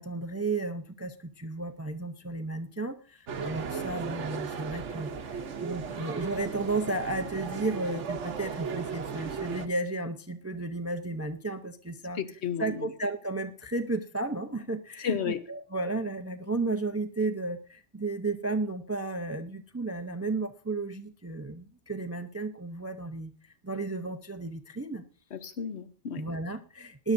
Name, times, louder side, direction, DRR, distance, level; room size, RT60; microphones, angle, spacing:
voice 1, 0.0-12.2 12.6-25.0 26.2-27.1, right 2 dB, 20° right, 9 dB, 0.4 m, -33 dB
sound 1, 3.3-9.7, right 6 dB, 75° right, 1.2 m, -36 dB
voice 2, 12.1-12.9 15.0-15.4 25.3-26.2, left 7 dB, 65° left, 11 dB, 1.2 m, -33 dB
20.0 x 11.0 x 2.6 m, 0.39 s
omnidirectional pair, 1.2 m